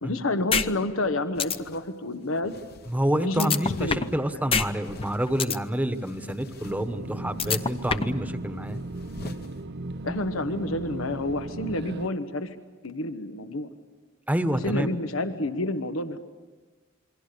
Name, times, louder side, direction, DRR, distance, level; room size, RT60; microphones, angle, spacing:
voice 1, 0.0-2.5 3.2-3.5 3.8-4.0 4.3-4.5 10.0-12.5 12.8-13.7 14.6-16.2, left 2 dB, 80° left, 9 dB, 1.2 m, -29 dB
sound 1, 0.5-0.7 1.0-1.1 1.4-1.6 3.4-4.2 4.5-4.7 5.0-5.6 7.4-8.2, left 5 dB, 25° left, 0.8 m, -24 dB
sound 2, 1.3-1.9 2.4-3.0 3.6-4.2 4.8-5.5 6.0-6.9 7.4-8.0 9.0-9.5, left 2 dB, 50° left, 1.3 m, -42 dB
voice 2, 2.9-8.8 14.3-14.9, equal, 10° right, 9 dB, 1.2 m, -28 dB
sound 3, 6.6-12.1, right 2 dB, 55° right, 0.7 m, -37 dB
28.0 x 23.0 x 6.9 m, 1.3 s
head